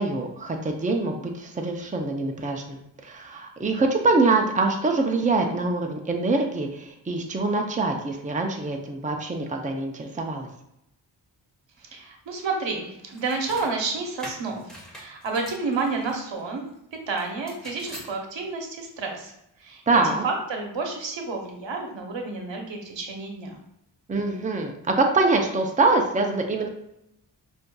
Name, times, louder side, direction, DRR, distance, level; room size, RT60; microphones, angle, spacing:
voice 1, 0.0-10.5 19.9-20.2 24.1-26.7, right 3 dB, 15° right, 3 dB, 0.5 m, -24 dB
voice 2, 11.8-16.6 17.1-19.3 19.6-23.6, right 4 dB, 80° right, 2 dB, 0.9 m, -30 dB
sound 1, 13.1-13.7 14.2-16.2 17.2-18.1, equal, ahead, 1.4 m, -43 dB
6.2 x 2.6 x 2.3 m, 0.82 s
wide cardioid pair, 70°, 45 cm